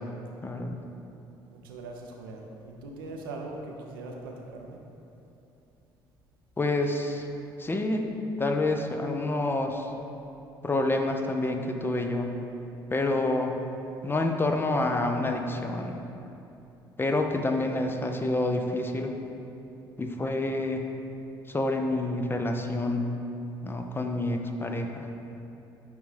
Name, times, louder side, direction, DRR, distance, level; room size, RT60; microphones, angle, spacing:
voice 1, 0.4-0.8 6.6-7.3 7.6-8.1 8.4-9.9 10.6-12.3 12.9-13.6 14.0-16.0 17.0-19.1 20.0-20.9 21.5-23.2 23.6-25.1, left 2 dB, 20° left, 4 dB, 0.6 m, -28 dB
voice 2, 1.5-4.8, right 2 dB, 75° right, 1 dB, 0.6 m, -41 dB
9.3 x 3.4 x 3.3 m, 2.8 s
figure-of-eight pair, 50°, 12 cm